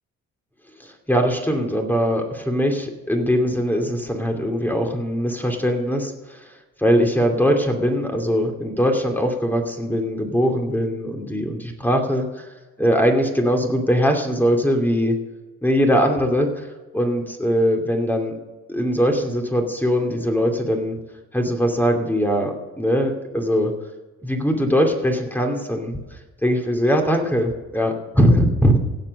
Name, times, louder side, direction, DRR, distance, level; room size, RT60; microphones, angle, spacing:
voice 1, 0.8-6.5 6.8-12.5 12.8-15.2 15.6-16.7 16.9-18.4 18.7-21.0 21.3-23.7 24.2-26.0 26.4-28.8, equal, 5° left, 3 dB, 2.6 m, -21 dB
16.5 x 7.7 x 6.6 m, 1.2 s
cardioid pair, 90°, 30 cm